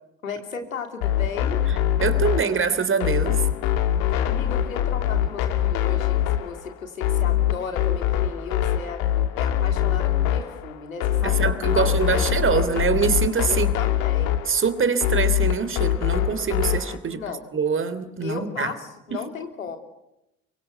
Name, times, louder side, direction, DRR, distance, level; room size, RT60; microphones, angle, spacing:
voice 1, 0.2-1.6 4.2-9.0 9.4-12.2 12.5-12.7 13.5-14.3 17.1-17.4 18.2-19.8, left 6 dB, 90° left, 6 dB, 3.1 m, -35 dB
sound 1, 1.0-17.0, left 11 dB, 60° left, 2.4 m, -23 dB
voice 2, 2.0-3.4 11.2-13.7 14.5-17.2 17.5-18.7 19.1-19.2, right 6 dB, 30° right, 12 dB, 3.1 m, -24 dB
24.5 x 23.5 x 8.0 m, 0.86 s
hypercardioid pair, 65°, 39 cm